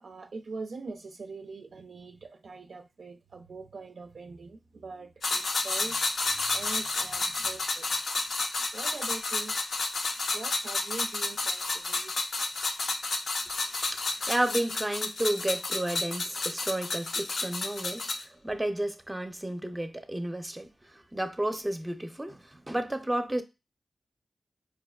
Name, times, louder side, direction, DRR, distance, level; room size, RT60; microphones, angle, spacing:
voice 1, 0.0-8.0 8.7-9.5 10.3-12.1 17.8-17.9, right 3 dB, 75° right, 0.3 m, -43 dB
sound 1, 5.2-18.2, left 3 dB, 80° left, 0.4 m, -31 dB
voice 2, 13.9-18.0 18.4-20.7 21.1-23.4, right 1 dB, 20° right, 0.5 m, -31 dB
4.6 x 2.1 x 2.3 m
cardioid pair, 45°, 0 cm